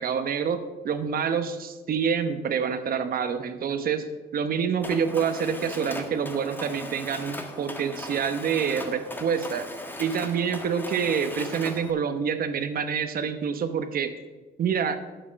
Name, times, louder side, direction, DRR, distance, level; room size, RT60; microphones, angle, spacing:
voice 1, 0.0-4.0 4.3-9.6 10.0-14.1 14.6-15.0, right 7 dB, 55° right, 10 dB, 0.9 m, -27 dB
Mechanisms, 4.8-11.9, left 1 dB, 10° left, 1.2 m, -38 dB
10.0 x 6.8 x 6.3 m, 1.2 s
cardioid pair, 115°, 18 cm